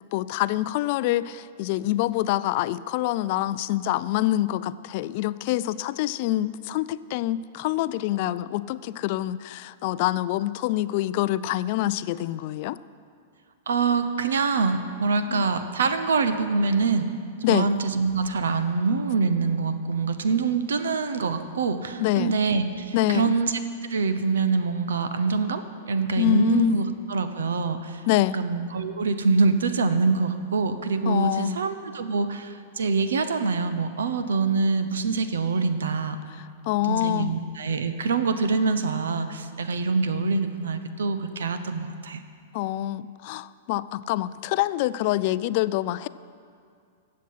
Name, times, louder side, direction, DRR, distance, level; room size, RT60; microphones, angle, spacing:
voice 1, 0.1-12.8 15.3-15.4 17.4-17.7 22.0-22.3 22.9-23.3 26.2-26.8 28.1-28.4 31.1-31.6 36.7-37.3 42.5-46.1, left 15 dB, 50° left, 16 dB, 0.3 m, -25 dB
voice 2, 13.7-17.1 17.5-23.6 23.9-28.1 28.3-36.2 36.8-42.2, right 4 dB, 85° right, 10 dB, 0.8 m, -25 dB
15.5 x 7.5 x 5.7 m, 2.3 s
hypercardioid pair, 125°, 0 cm